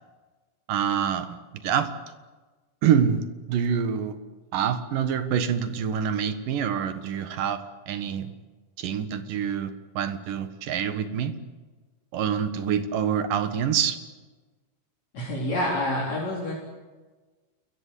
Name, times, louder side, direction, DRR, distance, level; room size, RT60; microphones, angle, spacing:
voice 1, 0.7-1.9 2.8-3.2 3.5-4.2 4.5-7.6 7.9-8.3 8.8-11.3 12.1-14.0, right 8 dB, 85° right, 10 dB, 3.2 m, -26 dB
voice 2, 15.1-16.5, left 1 dB, 55° left, -4 dB, 5.2 m, -27 dB
28.5 x 22.0 x 8.4 m, 1.3 s
omnidirectional pair, 3.8 m